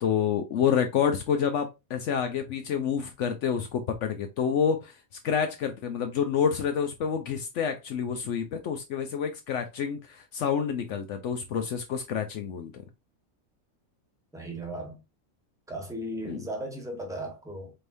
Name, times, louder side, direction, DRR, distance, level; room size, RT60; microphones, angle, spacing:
voice 1, 0.0-4.9 5.2-12.7 16.3-16.4, left 7 dB, 70° left, 0.9 m, -28 dB
voice 2, 14.3-15.0 15.7-17.7, right 1 dB, 5° right, 1.1 m, -36 dB
4.4 x 3.4 x 2.6 m
omnidirectional pair, 1.4 m